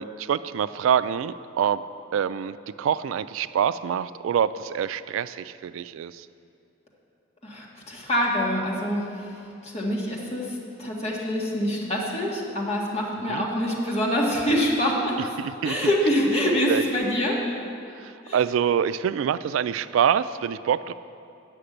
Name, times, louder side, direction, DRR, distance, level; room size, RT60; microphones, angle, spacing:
voice 1, 0.0-1.8 2.1-6.3 13.3-13.5 15.6-15.7 16.7-16.8 18.0-20.9, right 8 dB, 85° right, 15 dB, 0.3 m, -25 dB
voice 2, 7.4-9.3 9.6-15.2 15.6-17.4 18.3-18.4, equal, 35° left, -3 dB, 1.8 m, -25 dB
10.0 x 5.9 x 7.9 m, 2.5 s
head